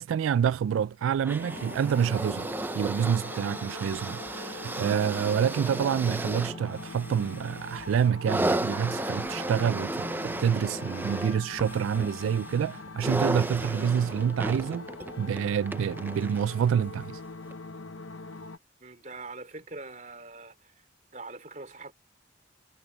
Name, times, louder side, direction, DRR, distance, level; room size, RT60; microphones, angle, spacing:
voice 1, 0.0-2.5 2.7-14.9 15.2-17.2, right 8 dB, 85° right, 0.3 m, -27 dB
sound 1, 1.2-16.7 17.5-17.6, right 1 dB, 10° right, 0.5 m, -34 dB
sound 2, 1.4-18.6, left 3 dB, 75° left, 0.9 m, -42 dB
voice 2, 18.8-20.7 21.1-21.9, right 3 dB, 40° right, 3.5 m, -43 dB
head